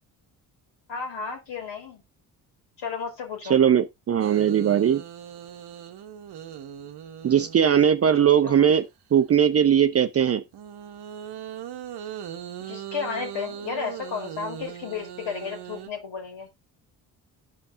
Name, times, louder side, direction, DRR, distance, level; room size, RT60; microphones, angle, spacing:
voice 1, 0.9-2.0 2.8-3.6 8.4-8.7 12.6-16.5, left 6 dB, 60° left, 2.6 m, -33 dB
voice 2, 3.5-5.0 7.2-10.4, right 8 dB, 30° right, 0.5 m, -20 dB
sound 1, 4.2-7.9 10.5-15.9, right 10 dB, 50° right, 0.9 m, -39 dB
12.5 x 5.4 x 2.6 m
hypercardioid pair, 45°, 49 cm